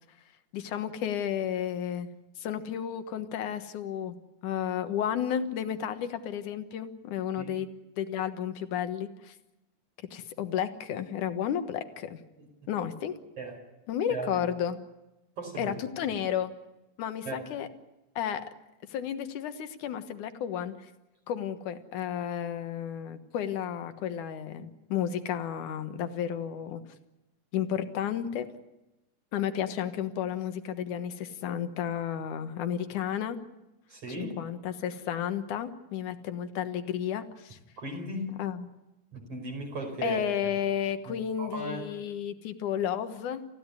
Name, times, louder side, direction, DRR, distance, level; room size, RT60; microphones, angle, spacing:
voice 1, 0.5-2.1 2.4-4.1 4.4-7.7 8.0-9.4 10.1-12.2 12.7-13.1 13.9-14.8 15.6-16.5 17.0-17.7 18.2-18.4 18.9-20.9 21.3-26.8 27.5-28.5 29.3-33.4 34.1-37.6 38.4-38.7 40.0-43.5, left 9 dB, 80° left, 9 dB, 2.8 m, -32 dB
voice 2, 14.1-14.4 15.4-15.7 17.2-17.5 33.9-34.4 37.8-38.3 39.1-40.5 41.1-41.9, right 2 dB, 50° right, 3 dB, 6.2 m, -36 dB
28.5 x 15.5 x 9.7 m, 1.0 s
omnidirectional pair, 3.5 m